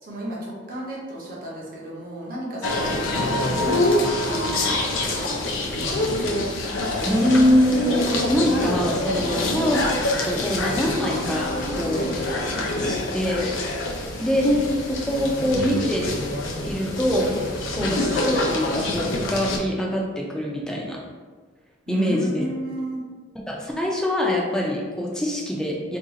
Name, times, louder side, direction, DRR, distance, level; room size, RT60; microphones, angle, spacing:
voice 1, 0.0-3.0 3.6-6.0 11.9-12.1 17.7-17.9 21.9-23.0, right 1 dB, 45° right, -4 dB, 0.8 m, -33 dB
sound 1, 2.6-19.6, left 1 dB, 75° left, 0.5 m, -25 dB
voice 2, 7.0-9.8 10.2-12.1 12.8-13.5 14.2-16.1 16.6-17.3 17.7-21.0 21.9-22.4 23.5-26.0, left 1 dB, 5° left, -2 dB, 0.4 m, -24 dB
2.6 x 2.4 x 3.8 m, 1.5 s
head